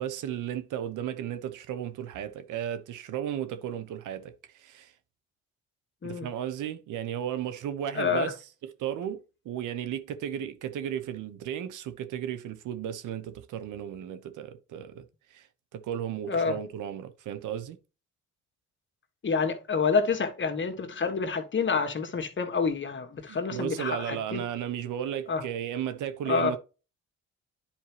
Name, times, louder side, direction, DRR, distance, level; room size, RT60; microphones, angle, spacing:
voice 1, 0.0-4.9 6.0-8.3 8.8-15.0 15.3-15.5 15.7-17.8 23.3-26.6, right 10 dB, 85° right, 1.1 m, -34 dB
voice 2, 7.9-8.3 16.3-16.6 19.2-24.4 25.3-25.4 26.3-26.6, left 5 dB, 40° left, 1.6 m, -28 dB
10.0 x 4.6 x 3.3 m
cardioid pair, 90°, 30 cm